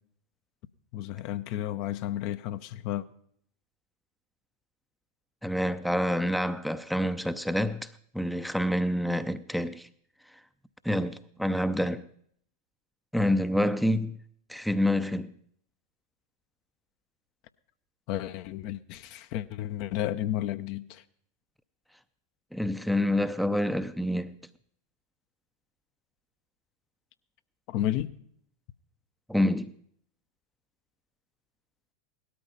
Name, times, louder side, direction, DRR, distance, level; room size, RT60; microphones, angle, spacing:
voice 1, 0.9-3.0 18.1-21.0 27.7-28.1, left 13 dB, 45° left, 0.7 m, -32 dB
voice 2, 5.4-7.9 8.1-9.9 10.8-12.0 13.1-14.2 14.5-15.3 22.5-24.3 29.3-29.7, left 1 dB, ahead, 0.6 m, -27 dB
18.0 x 13.0 x 5.4 m
figure-of-eight pair, 90°, 0 cm